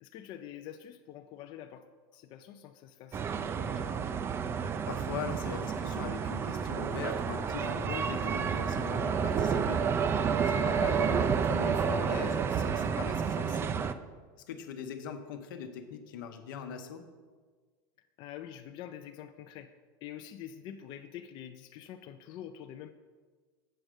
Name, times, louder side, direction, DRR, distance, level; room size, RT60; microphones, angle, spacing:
voice 1, 0.0-1.9 2.1-3.2 3.5-3.9 18.2-19.7 20.0-22.9, left 10 dB, 45° left, 7 dB, 0.4 m, -46 dB
sound 1, 3.1-13.9, right 6 dB, 20° right, 0.3 m, -30 dB
voice 2, 4.9-9.9 10.4-13.7 14.5-17.0, left 7 dB, 80° left, 6 dB, 0.9 m, -41 dB
7.8 x 6.2 x 5.0 m, 1.5 s
supercardioid pair, 135°, 11 cm